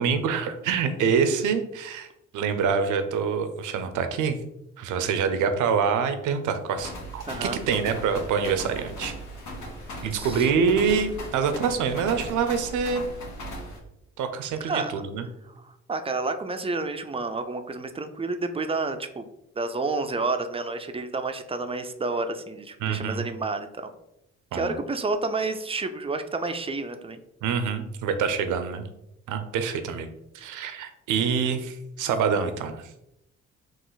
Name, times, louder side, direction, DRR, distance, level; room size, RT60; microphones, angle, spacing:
voice 1, 0.0-2.1 2.3-4.4 4.8-9.1 10.0-13.0 14.2-15.2 22.8-23.2 24.5-24.8 27.4-28.8 29.3-30.1 30.3-32.9, right 6 dB, 80° right, 8 dB, 0.6 m, -26 dB
sound 1, 6.8-13.8, equal, 80° left, 1.4 m, -38 dB
voice 2, 7.3-7.6 10.0-10.5 14.7-14.9 15.6-19.3 19.6-23.9 24.5-27.2, right 3 dB, 20° right, 8 dB, 0.4 m, -30 dB
4.0 x 2.5 x 3.9 m, 0.85 s
cardioid pair, 90°, 30 cm